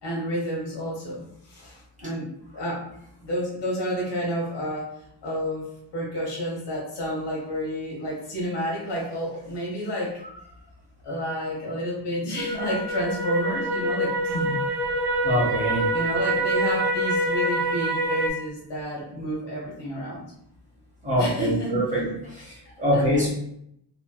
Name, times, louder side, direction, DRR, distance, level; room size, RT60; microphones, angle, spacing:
voice 1, 0.0-2.8 3.2-4.9 5.2-5.6 5.9-10.2 11.0-14.6 15.9-20.2 21.2-21.7 22.9-23.3, equal, 70° left, -4 dB, 1.1 m, -30 dB
sound 1, 12.4-18.3, right 1 dB, 65° right, 0.6 m, -25 dB
voice 2, 15.2-15.8 21.0-23.3, equal, 15° right, -4 dB, 1.0 m, -24 dB
3.0 x 2.8 x 2.2 m, 0.76 s
wide cardioid pair, 140°, 43 cm